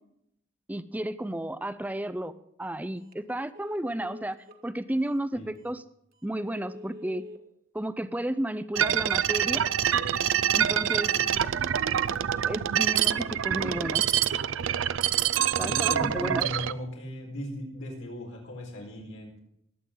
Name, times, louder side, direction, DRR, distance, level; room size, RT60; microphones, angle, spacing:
voice 1, 0.7-2.3 2.6-4.4 4.6-5.8 6.2-7.2 7.7-9.6 10.5-11.1 12.5-14.0 15.6-16.4, right 1 dB, 10° right, 13 dB, 0.4 m, -32 dB
Telephone, 3.0-3.2 3.5-4.6 5.2-5.3 5.7-5.8 6.2-7.4 8.6-9.2, left 2 dB, 45° right, 1.4 m, -46 dB
sound 1, 8.8-16.7, right 9 dB, 70° right, 0.5 m, -26 dB
voice 2, 15.6-19.4, equal, 80° left, 0 dB, 4.5 m, -37 dB
20.5 x 8.6 x 3.8 m, 0.77 s
head